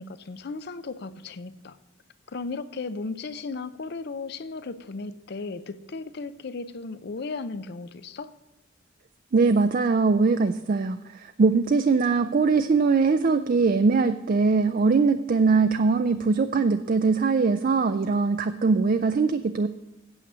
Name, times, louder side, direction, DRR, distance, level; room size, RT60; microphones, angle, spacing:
voice 1, 0.0-1.8 2.3-8.3, left 3 dB, 55° left, 13 dB, 0.5 m, -35 dB
voice 2, 9.3-19.7, right 4 dB, 45° right, 9 dB, 0.4 m, -22 dB
8.6 x 8.2 x 6.1 m, 1.0 s
head